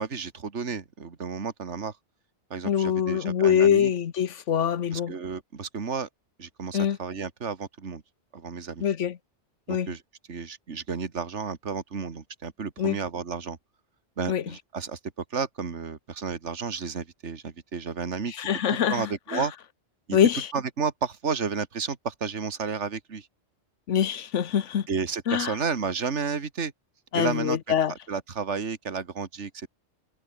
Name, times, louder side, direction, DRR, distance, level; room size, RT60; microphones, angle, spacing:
voice 1, 0.0-1.9 2.5-3.9 4.9-6.1 6.4-8.0 8.3-8.9 9.7-10.0 10.3-13.6 14.2-15.0 15.3-19.5 20.1-20.2 20.5-23.3 24.9-26.7 27.1-27.6 28.1-29.7, right 5 dB, 70° right, 2.1 m, -32 dB
voice 2, 2.6-5.1 6.7-7.0 8.8-9.2 9.7-9.9 12.8-13.0 14.3-14.4 18.3-19.4 20.1-20.5 23.9-24.9 25.3-25.5 27.1-27.9, left 8 dB, 80° left, 1.3 m, -24 dB
omnidirectional pair, 1.2 m